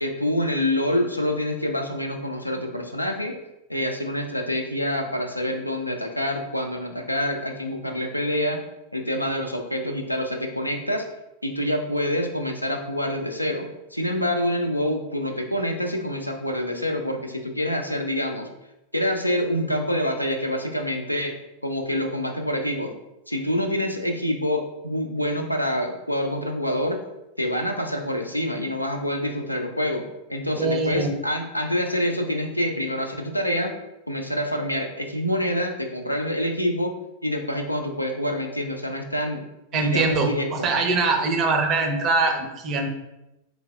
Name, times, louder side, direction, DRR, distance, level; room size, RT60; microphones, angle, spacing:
voice 1, 0.0-3.3 3.7-8.6 8.9-11.0 11.4-18.5 18.9-21.3 21.6-22.9 23.3-27.0 27.4-33.7 34.1-36.9 37.2-39.4 39.7-40.7, left 1 dB, 90° left, 4 dB, 0.4 m, -26 dB
voice 2, 30.6-31.1 39.7-42.9, right 3 dB, 35° right, 4 dB, 0.6 m, -23 dB
3.8 x 3.0 x 2.3 m, 0.93 s
figure-of-eight pair, 90°, 0 cm